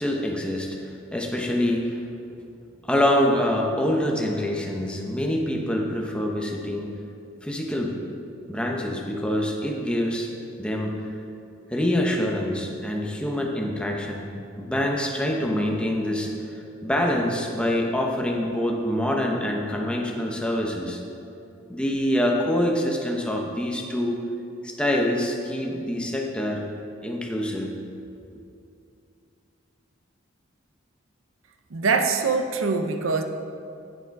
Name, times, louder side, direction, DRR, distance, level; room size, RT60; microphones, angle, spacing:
voice 1, 0.0-2.0 2.8-6.9 7.4-7.9 8.5-10.3 10.6-10.9 11.7-21.0 21.7-24.2 24.6-26.6 27.0-27.7, left 1 dB, 5° left, 0 dB, 0.9 m, -25 dB
voice 2, 31.7-33.2, right 4 dB, 85° right, 6 dB, 0.7 m, -23 dB
9.3 x 6.8 x 4.7 m, 2.5 s
head